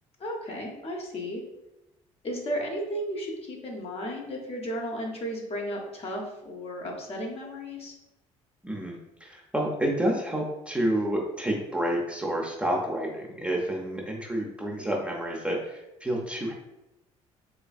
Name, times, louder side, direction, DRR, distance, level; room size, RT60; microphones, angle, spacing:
voice 1, 0.2-1.4 2.2-7.9, equal, 35° left, 0 dB, 0.9 m, -34 dB
voice 2, 8.6-16.5, right 1 dB, 5° right, -2 dB, 0.6 m, -29 dB
3.4 x 3.1 x 2.3 m, 0.94 s
figure-of-eight pair, 50°, 17 cm